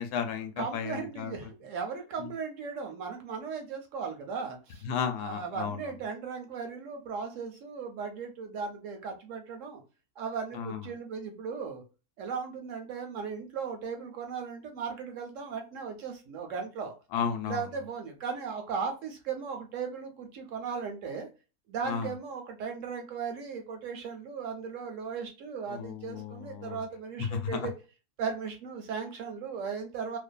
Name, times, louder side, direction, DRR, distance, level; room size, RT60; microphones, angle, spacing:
voice 1, 0.0-1.3 2.2-2.3 4.8-5.9 10.5-10.9 17.1-17.7 21.8-22.1 25.7-26.8 27.2-27.7, left 7 dB, 90° left, 7 dB, 1.1 m, -34 dB
voice 2, 0.6-4.9 5.2-9.8 10.2-11.8 12.2-16.9 17.5-21.3 21.7-27.7 28.2-30.2, right 5 dB, 70° right, 4 dB, 0.8 m, -37 dB
2.5 x 2.4 x 2.2 m, 0.32 s
omnidirectional pair, 1.6 m